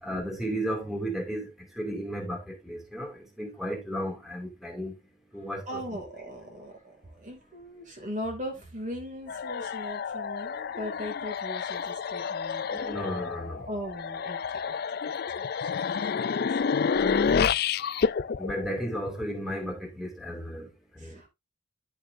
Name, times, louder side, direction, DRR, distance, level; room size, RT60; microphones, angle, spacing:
voice 1, 0.0-5.0 5.3-5.8 12.7-13.7 18.4-21.2, equal, ahead, 2.6 m, -34 dB
voice 2, 5.7-12.7 13.7-14.8 15.0-15.5 15.9-16.8 17.2-17.6 21.0-21.3, equal, 35° right, 2.6 m, -39 dB
sound 1, 9.3-19.5, left 6 dB, 45° left, 0.3 m, -29 dB
11.5 x 6.4 x 2.7 m
head